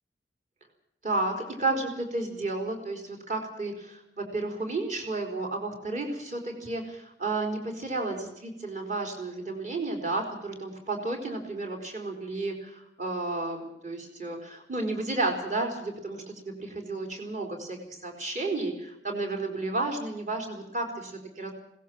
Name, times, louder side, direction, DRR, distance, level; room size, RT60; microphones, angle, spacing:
voice 1, 1.0-17.8 18.0-21.5, right 2 dB, 45° right, 2 dB, 4.1 m, -32 dB
21.0 x 18.5 x 7.5 m, 0.80 s
head